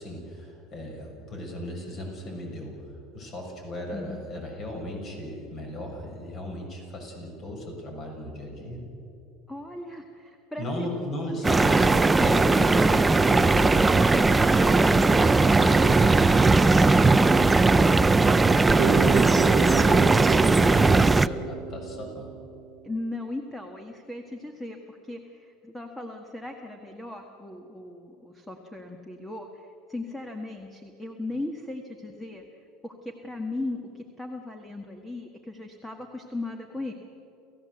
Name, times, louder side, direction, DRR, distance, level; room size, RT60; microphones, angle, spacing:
voice 1, 0.0-8.8 10.6-14.4 18.6-22.3, left 1 dB, 35° left, 1 dB, 6.6 m, -37 dB
voice 2, 3.9-4.4 9.5-10.9 12.3-12.7 22.8-32.4 32.8-36.9, left 2 dB, 5° left, 4 dB, 1.6 m, -38 dB
sound 1, 11.4-21.3, right 3 dB, 10° right, 0.5 m, -19 dB
Bass guitar, 18.8-22.8, right 11 dB, 45° right, 0.9 m, -31 dB
29.5 x 15.0 x 7.9 m, 2.9 s
supercardioid pair, 135°, 0 cm